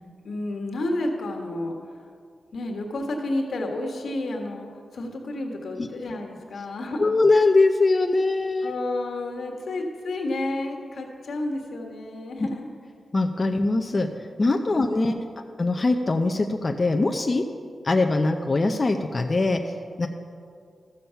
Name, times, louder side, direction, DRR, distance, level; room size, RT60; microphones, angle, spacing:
voice 1, 0.2-1.8 2.5-7.1 8.6-12.7 14.7-15.2, left 2 dB, 75° left, 2 dB, 1.4 m, -31 dB
voice 2, 7.0-8.7 13.1-15.1 15.6-17.4 17.8-20.1, left 2 dB, 35° left, 4 dB, 0.6 m, -22 dB
14.0 x 7.0 x 5.7 m, 2.2 s
wide cardioid pair, 90°, 0 cm